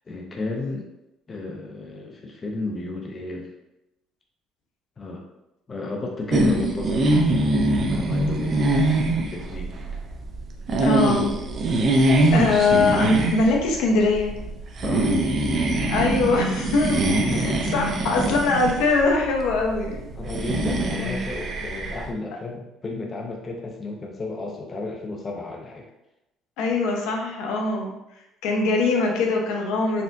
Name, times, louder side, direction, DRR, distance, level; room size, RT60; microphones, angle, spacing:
voice 1, 0.1-0.9 1.3-3.5 5.0-5.2 5.7-7.2 7.9-9.9 14.8-15.1 17.3-17.8 20.2-25.8, left 2 dB, 20° left, 0 dB, 0.5 m, -33 dB
sound 1, 6.3-22.1, right 2 dB, 30° right, 0.4 m, -23 dB
voice 2, 10.8-11.4 11.8-14.3 15.9-20.0 26.6-27.9 28.4-30.0, left 3 dB, 80° left, 0 dB, 0.9 m, -22 dB
4.2 x 3.5 x 2.6 m, 0.89 s
cardioid pair, 175°, 0 cm